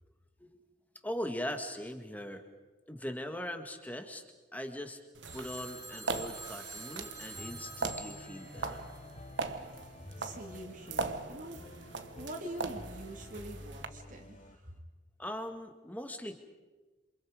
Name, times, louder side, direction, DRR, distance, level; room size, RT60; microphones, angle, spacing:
voice 1, 1.0-2.4 2.9-4.2 4.5-5.0 5.3-8.9 15.2-16.4, left 1 dB, 10° left, 6 dB, 2.0 m, -40 dB
sound 1, 5.1-13.9, right 3 dB, 80° right, 1.3 m, -40 dB
Telephone, 5.3-9.5, right 2 dB, 20° right, 2.4 m, -48 dB
sound 2, 7.4-14.6, left 1 dB, 35° left, 1.1 m, -50 dB
voice 2, 9.7-14.4, right 1 dB, 45° right, 1 dB, 2.5 m, -45 dB
28.0 x 27.0 x 5.2 m, 1.2 s
head